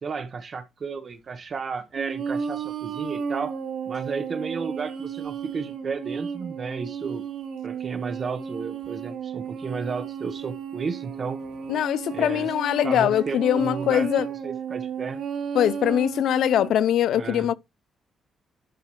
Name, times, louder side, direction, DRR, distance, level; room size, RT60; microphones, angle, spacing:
voice 1, 0.0-3.6 3.9-7.2 7.6-11.4 12.1-12.5 12.8-14.1 14.4-15.2 17.1-17.5, right 5 dB, 40° right, 0.9 m, -33 dB
sound 1, 1.9-16.7, right 7 dB, 65° right, 2.0 m, -33 dB
voice 2, 11.7-14.3 15.5-17.5, left 10 dB, 80° left, 0.4 m, -22 dB
11.5 x 4.9 x 3.0 m
cardioid pair, 125°, 0 cm